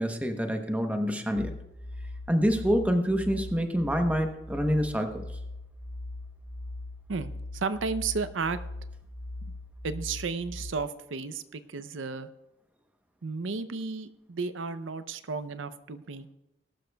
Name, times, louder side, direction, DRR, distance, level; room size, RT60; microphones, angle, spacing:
voice 1, 0.0-1.5 2.3-5.2, equal, 10° right, 5 dB, 0.9 m, -27 dB
sound 1, 1.4-10.7, left 2 dB, 90° left, 1.1 m, -40 dB
voice 2, 7.1-8.6 9.4-9.5 9.8-12.3 13.2-16.3, right 4 dB, 85° right, 12 dB, 0.6 m, -33 dB
19.5 x 11.5 x 2.3 m, 0.91 s
head